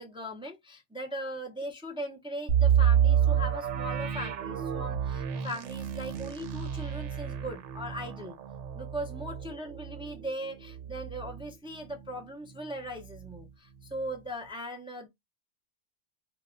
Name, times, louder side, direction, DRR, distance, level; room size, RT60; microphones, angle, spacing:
voice 1, 0.0-8.4 8.7-15.1, equal, 10° right, 0.3 m, -39 dB
sound 1, 2.5-12.2 12.6-12.7 13.2-13.4, right 9 dB, 85° right, 0.9 m, -29 dB
2.8 x 2.1 x 3.6 m
omnidirectional pair, 1.2 m